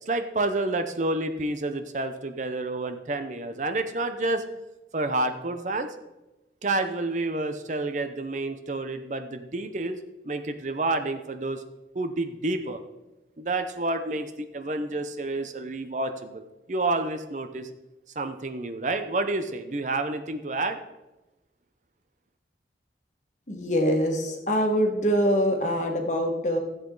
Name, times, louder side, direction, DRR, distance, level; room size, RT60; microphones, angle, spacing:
voice 1, 0.0-4.4 4.9-5.9 6.6-10.0 10.2-11.6 11.9-12.8 13.4-17.7 18.2-20.8, right 2 dB, 45° right, 8 dB, 0.7 m, -29 dB
voice 2, 23.5-26.6, equal, 40° left, 2 dB, 1.6 m, -24 dB
15.0 x 8.1 x 3.9 m, 1.0 s
head